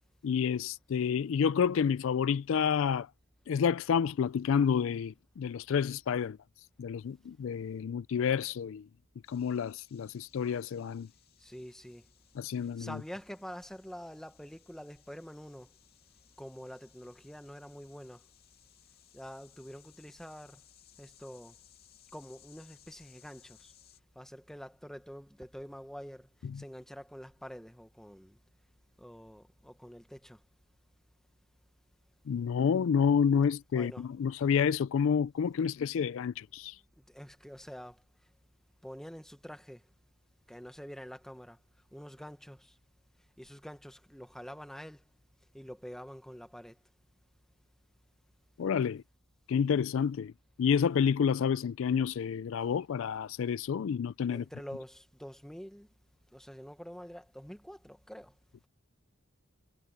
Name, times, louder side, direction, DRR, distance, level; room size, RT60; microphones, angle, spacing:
voice 1, 0.2-3.1 3.5-6.4 6.8-8.9 9.3-11.1 12.4-13.0 26.4-26.6 32.3-36.8 48.6-49.0 49.5-50.3 50.6-54.4, left 7 dB, 65° left, 0.3 m, -29 dB
sound 1, 9.2-24.0, left 10 dB, 45° left, 2.4 m, -63 dB
voice 2, 11.4-12.1 12.6-15.7 16.4-18.3 19.1-20.6 21.0-21.6 22.1-23.7 24.1-26.3 26.5-28.4 29.0-30.4 33.7-34.1 37.0-38.0 38.8-39.8 40.5-41.6 41.9-42.8 43.4-45.0 45.5-46.8 54.3-55.9 56.3-58.3, equal, ahead, 1.2 m, -46 dB
head